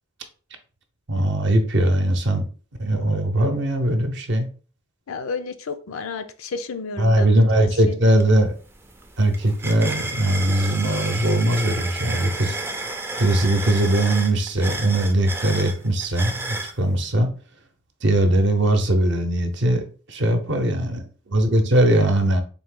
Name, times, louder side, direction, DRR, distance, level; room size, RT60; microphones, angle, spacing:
voice 1, 1.1-2.5 2.8-4.5 7.0-8.5 9.2-12.5 13.2-17.3 18.0-19.8 20.1-21.0 21.3-22.4, right 1 dB, 55° right, 6 dB, 0.7 m, -20 dB
voice 2, 5.1-8.2, left 4 dB, 85° left, 9 dB, 0.5 m, -32 dB
sound 1, 8.2-8.3 8.6-16.8, right 2 dB, 10° right, 0.4 m, -32 dB
4.1 x 2.7 x 3.7 m, 0.38 s
head